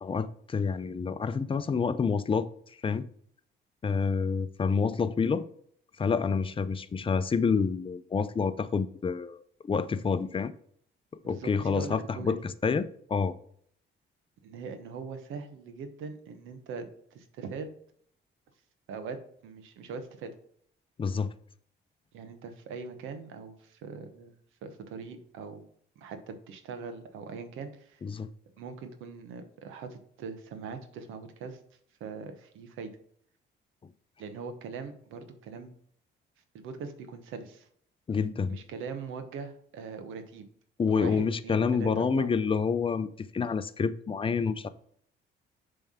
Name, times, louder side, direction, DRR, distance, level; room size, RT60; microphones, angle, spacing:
voice 1, 0.0-2.5 2.8-3.1 3.8-5.4 6.0-10.5 11.2-12.4 12.6-13.3 21.0-21.3 28.0-28.3 38.1-38.6 40.8-43.1 43.3-44.7, left 5 dB, 25° left, 0.5 m, -28 dB
voice 2, 11.2-12.4 14.4-17.7 18.9-19.2 19.4-20.3 22.1-24.3 24.6-25.6 26.0-28.0 28.6-31.6 32.0-32.9 34.2-35.7 36.5-37.7 38.5-40.5 40.9-42.3, right 5 dB, 90° right, 1.0 m, -41 dB
7.2 x 3.4 x 5.6 m
cardioid pair, 90°, 20 cm